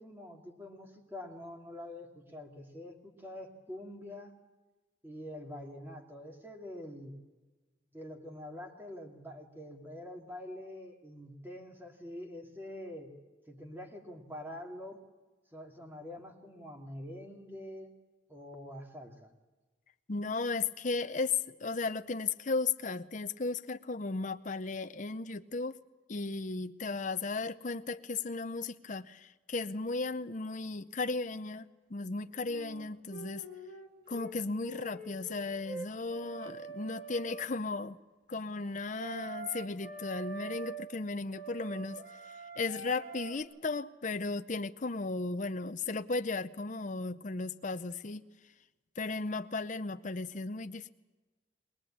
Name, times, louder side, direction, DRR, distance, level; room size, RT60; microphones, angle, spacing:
voice 1, 0.0-4.4 5.0-7.1 7.9-13.1 13.5-15.0 15.5-17.9 18.3-19.3, left 1 dB, 10° right, 1 dB, 2.5 m, -45 dB
voice 2, 20.1-25.8 26.1-33.4 34.1-38.0 38.3-42.0 42.6-48.2 49.0-50.9, left 3 dB, 40° left, 9 dB, 0.7 m, -35 dB
sound 1, 32.4-34.4 34.6-37.5 38.9-40.9 41.3-43.4, right 4 dB, 50° right, 2.2 m, -44 dB
22.0 x 20.5 x 8.7 m, 1.2 s
head